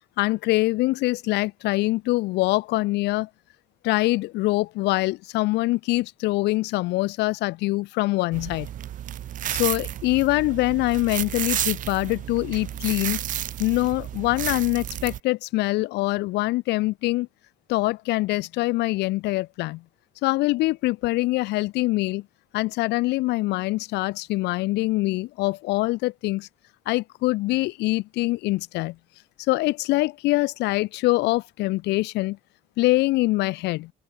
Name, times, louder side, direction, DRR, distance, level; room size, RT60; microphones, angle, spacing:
voice 1, 0.2-3.3 3.8-8.7 9.5-13.2 13.6-17.3 17.7-19.8 20.2-22.2 22.5-26.5 26.9-29.0 29.5-32.4 32.8-33.9, left 20 dB, 85° left, 2.1 m, -24 dB
sound 1, 8.3-15.2, right 11 dB, 50° right, 0.6 m, -31 dB
open air
cardioid pair, 110°, 17 cm